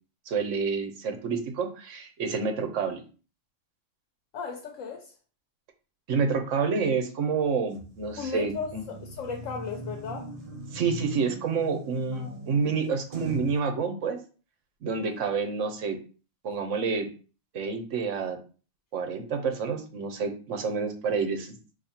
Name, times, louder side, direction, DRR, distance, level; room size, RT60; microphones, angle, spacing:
voice 1, 0.3-3.0 6.1-8.8 10.7-14.2 14.8-16.0 16.4-17.1 17.5-18.4 18.9-21.5, right 5 dB, 75° right, 1.2 m, -28 dB
voice 2, 4.3-5.1 8.2-10.3 12.1-12.3 15.0-15.3, left 5 dB, 80° left, 1.1 m, -36 dB
sound 1, 7.7-13.6, right 1 dB, 35° right, 0.7 m, -41 dB
4.2 x 2.8 x 4.2 m
omnidirectional pair, 1.3 m